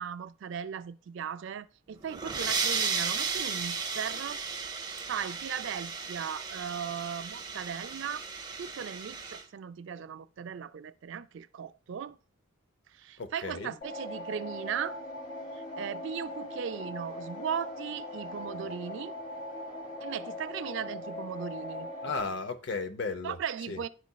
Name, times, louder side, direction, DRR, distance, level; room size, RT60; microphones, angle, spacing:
voice 1, 0.0-4.4 5.1-8.2 8.6-12.2 12.9-15.0 15.5-19.1 20.0-21.9 23.2-23.9, right 7 dB, 60° right, 0.3 m, -37 dB
sound 1, 2.0-9.4, right 5 dB, 20° right, 0.7 m, -34 dB
voice 2, 13.2-13.8 22.0-23.4 23.7-23.8, left 4 dB, 55° left, 0.6 m, -35 dB
sound 2, 13.8-22.2, left 1 dB, 35° left, 2.0 m, -40 dB
10.5 x 4.1 x 2.2 m
head